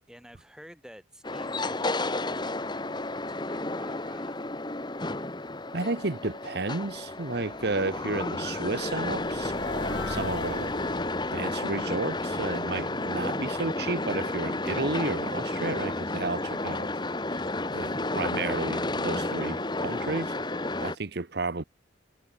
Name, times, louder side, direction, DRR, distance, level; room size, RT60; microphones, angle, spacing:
voice 1, 0.1-4.4, equal, 5° right, 5.2 m, -51 dB
sound 1, 1.2-21.0, left 2 dB, 25° left, 1.8 m, -31 dB
voice 2, 5.7-9.5 9.9-10.7 11.3-16.9 17.3-17.4 17.7-20.3 20.8-21.6, right 3 dB, 60° right, 1.0 m, -32 dB
sound 2, 6.8-13.7, left 2 dB, 80° left, 5.9 m, -42 dB
head